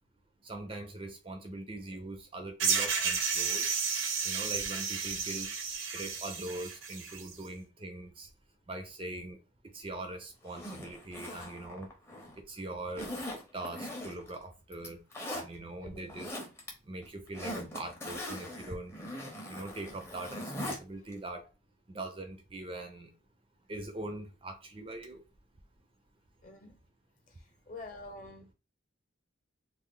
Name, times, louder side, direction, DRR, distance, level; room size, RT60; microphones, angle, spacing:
voice 1, 0.4-3.7 4.2-5.5 5.9-8.3 8.7-9.4 9.7-11.9 12.4-13.1 13.5-15.0 15.3-16.3 16.9-18.9 19.5-21.5 21.9-23.1 23.7-25.2, right 2 dB, 25° right, 0.4 m, -42 dB
sound 1, 2.6-7.3, right 5 dB, 85° right, 0.7 m, -32 dB
Zipper (clothing), 10.4-12.4 13.0-14.4 14.7-15.5 16.0-16.7 17.0-20.8 21.1-21.2, left 1 dB, 15° left, 0.6 m, -41 dB
voice 2, 15.8-16.2 21.0-21.2 26.4-26.7 27.7-28.5, left 2 dB, 40° left, 0.8 m, -47 dB
3.2 x 2.1 x 3.6 m
head